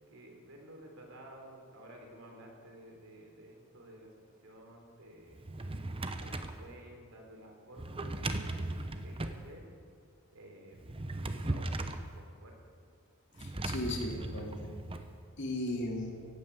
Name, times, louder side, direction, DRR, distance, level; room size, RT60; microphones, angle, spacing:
voice 1, 0.1-5.5 6.2-9.7 10.3-10.9 11.2-12.6, right 1 dB, 80° right, 1 dB, 3.5 m, -53 dB
Drawer open or close, 5.3-6.6 7.8-9.4 10.8-12.1 13.4-15.1, right 2 dB, 25° right, 0.8 m, -37 dB
voice 2, 13.4-14.7 15.4-16.1, left 1 dB, 60° left, 0 dB, 2.7 m, -36 dB
16.0 x 9.2 x 8.2 m, 2.2 s
head